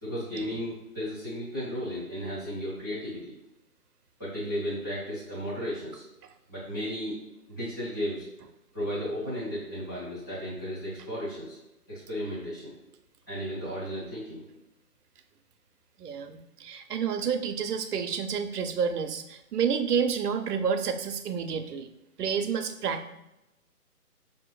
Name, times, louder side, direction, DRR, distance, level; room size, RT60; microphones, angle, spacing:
voice 1, 0.0-3.3 4.2-6.0 6.5-7.2 7.5-8.3 8.7-11.6 11.9-12.7 13.3-14.4, equal, 15° left, -13 dB, 0.6 m, -34 dB
voice 2, 16.0-21.9 22.2-23.1, right 6 dB, 70° right, 8 dB, 0.6 m, -29 dB
5.6 x 2.6 x 2.2 m, 0.91 s
hypercardioid pair, 160°, 48 cm